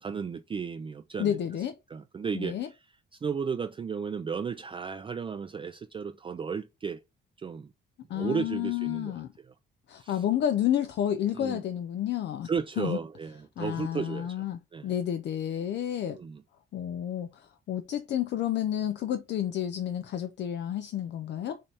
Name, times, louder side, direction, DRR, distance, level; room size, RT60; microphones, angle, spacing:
voice 1, 0.0-1.4 1.9-2.6 3.2-7.0 7.4-7.7 8.1-9.1 10.0-10.2 11.3-11.6 12.4-14.4 14.7-14.9 16.1-16.4, right 6 dB, 25° right, 0.4 m, -34 dB
voice 2, 1.2-1.8 2.3-2.7 8.1-9.3 9.9-12.5 12.8-13.0 13.6-16.2 16.7-21.6, left 10 dB, 60° left, 0.5 m, -30 dB
5.5 x 2.8 x 3.3 m
cardioid pair, 90°, 20 cm